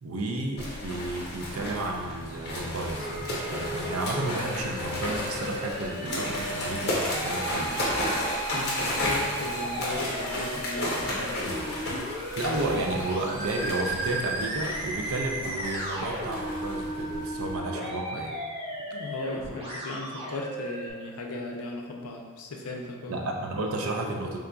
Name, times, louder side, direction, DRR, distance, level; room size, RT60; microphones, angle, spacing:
voice 1, 0.0-7.8 12.3-18.4 23.1-24.4, right 2 dB, 65° right, 2 dB, 0.5 m, -32 dB
sound 1, 0.6-17.6, left 1 dB, 50° left, 0.8 m, -33 dB
sound 2, 1.9-11.5, equal, 5° right, 0.7 m, -46 dB
Musical instrument, 2.9-20.9, right 1 dB, 25° right, 0.9 m, -35 dB
voice 2, 8.5-11.4 18.9-23.2, left 2 dB, 80° left, 1 dB, 0.5 m, -37 dB
3.7 x 3.5 x 2.3 m, 1.5 s
head